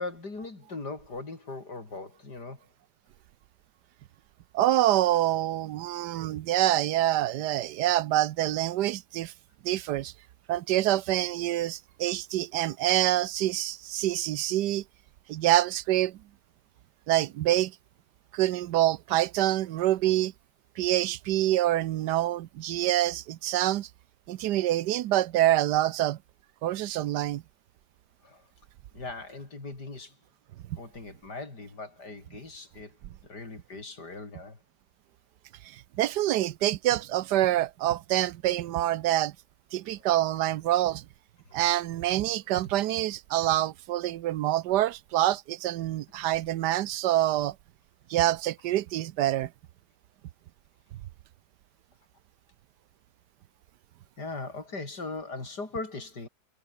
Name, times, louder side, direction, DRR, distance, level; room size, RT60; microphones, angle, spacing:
voice 1, 0.0-2.7 28.2-28.5 28.9-30.2 30.8-33.0 33.2-34.6 41.5-41.6 54.2-56.3, left 3 dB, 85° left, 5.3 m, -39 dB
voice 2, 4.5-9.3 9.6-10.1 10.5-14.8 15.3-16.2 17.1-17.8 18.3-20.3 20.8-23.9 24.3-26.2 26.6-27.4 30.7-30.8 35.6-39.3 39.7-41.0 41.5-47.6 48.1-49.5, right 14 dB, 85° right, 1.3 m, -26 dB
omnidirectional pair, 1.7 m